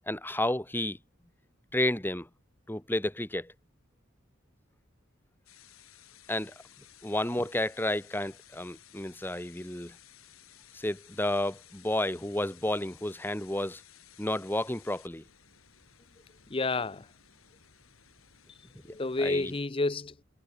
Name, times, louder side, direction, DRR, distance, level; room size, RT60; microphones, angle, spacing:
voice 1, 0.1-1.0 1.7-2.3 2.7-3.5 6.3-6.5 7.0-9.9 10.7-13.8 14.2-15.2 19.2-19.5, left 1 dB, 10° left, 1.7 m, -31 dB
sound 1, 5.5-19.6, left 10 dB, 85° left, 6.2 m, -57 dB
voice 2, 16.5-17.1 18.5-18.6 18.9-20.2, left 3 dB, 25° left, 0.6 m, -30 dB
head